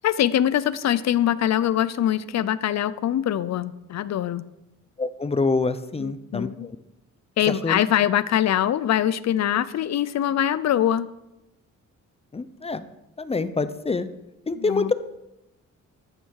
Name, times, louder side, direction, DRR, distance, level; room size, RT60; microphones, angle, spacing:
voice 1, 0.0-4.4 6.0-6.7 7.4-11.1 14.6-14.9, left 11 dB, 60° left, 17 dB, 0.7 m, -23 dB
voice 2, 5.0-6.8 7.6-7.8 12.3-12.9 13.2-14.1 14.5-14.9, left 3 dB, 20° left, 14 dB, 0.7 m, -26 dB
14.5 x 12.0 x 4.8 m, 0.90 s
cardioid pair, 130°, 31 cm